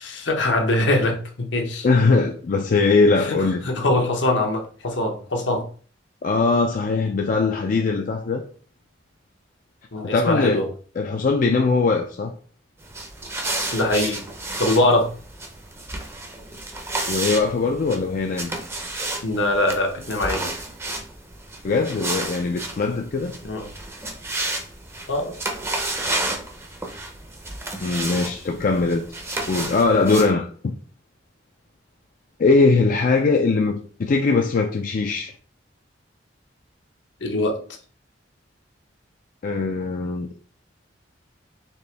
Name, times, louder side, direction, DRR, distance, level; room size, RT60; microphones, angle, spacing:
voice 1, 0.0-1.9 3.3-3.4 3.6-5.6 9.9-10.7 13.7-14.2 14.6-15.1 19.2-20.5 23.4-23.7 25.1-25.3 37.2-37.6, left 1 dB, 75° left, 1.0 m, -22 dB
voice 2, 1.8-3.6 6.2-8.4 10.0-10.7 11.0-12.3 17.1-18.5 21.6-23.3 27.8-29.0 29.5-30.5 32.4-35.3 39.4-40.3, left 3 dB, 45° left, 0.4 m, -20 dB
sound 1, 12.8-30.3, right 2 dB, 15° right, 0.6 m, -31 dB
4.3 x 3.0 x 3.3 m
head